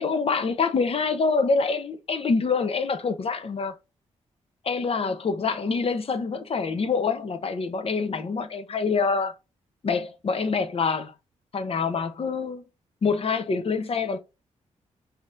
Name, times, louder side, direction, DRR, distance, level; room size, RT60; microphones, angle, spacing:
voice 1, 0.0-3.7 4.6-9.3 9.8-11.1 11.5-12.6 13.0-14.2, left 4 dB, 50° left, 0.7 m, -26 dB
5.3 x 2.9 x 2.5 m
cardioid pair, 60°, 13 cm